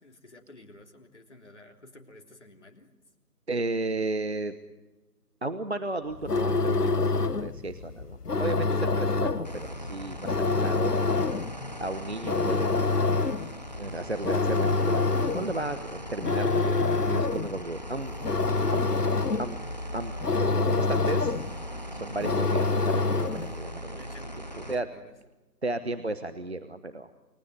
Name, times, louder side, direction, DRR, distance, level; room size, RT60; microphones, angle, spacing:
voice 1, 0.0-2.9 23.9-25.1, left 2 dB, 45° left, 3 dB, 3.5 m, -52 dB
voice 2, 3.5-4.6 5.4-11.0 11.8-12.9 13.8-18.2 18.7-18.9 19.4-19.6 19.9-21.4 21.9-24.0 24.7-24.9 25.6-27.1, right 2 dB, 40° right, 10 dB, 1.2 m, -34 dB
sound 1, 6.1-23.6, left 3 dB, 70° left, 1.1 m, -27 dB
sound 2, 9.4-24.8, equal, 25° left, 1.0 m, -40 dB
29.5 x 19.0 x 9.4 m, 1.1 s
figure-of-eight pair, 160°, 48 cm